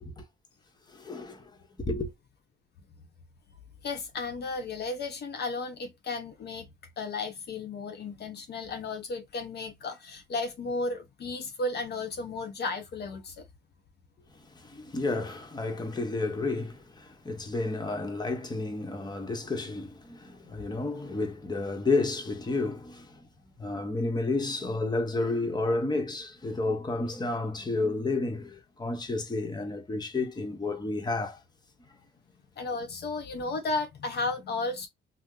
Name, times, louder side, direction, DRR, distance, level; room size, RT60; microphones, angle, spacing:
voice 1, 0.9-1.5 1.8-2.1 14.3-23.3 23.6-31.4, left 3 dB, 20° left, 0.9 m, -31 dB
voice 2, 3.8-6.7 7.0-13.4 20.5-20.6 32.6-34.9, left 3 dB, 55° left, 0.8 m, -34 dB
2.8 x 2.0 x 3.6 m
cardioid pair, 90°, 20 cm